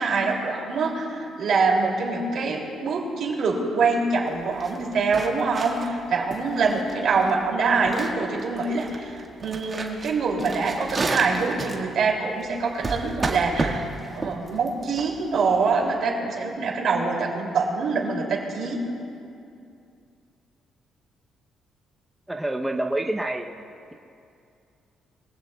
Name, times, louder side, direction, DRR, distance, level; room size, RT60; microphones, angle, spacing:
voice 1, 0.0-18.8, right 4 dB, 65° right, 0 dB, 2.7 m, -25 dB
sound 1, 4.3-15.9, right 3 dB, 30° right, 1.7 m, -32 dB
voice 2, 22.3-23.5, right 1 dB, 10° right, 2 dB, 0.7 m, -27 dB
22.5 x 15.5 x 2.3 m, 2.5 s
cardioid pair, 90°, 0 cm